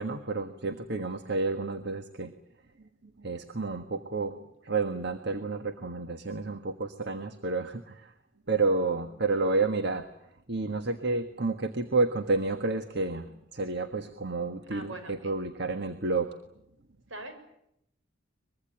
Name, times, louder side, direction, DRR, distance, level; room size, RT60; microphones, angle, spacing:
voice 1, 0.0-2.3 3.2-4.4 4.6-8.1 8.5-10.1 10.5-16.3, right 3 dB, 55° right, 8 dB, 1.5 m, -30 dB
voice 2, 14.7-15.3 17.1-17.3, right 2 dB, 70° right, 7 dB, 6.7 m, -41 dB
24.0 x 22.0 x 9.0 m, 0.77 s
head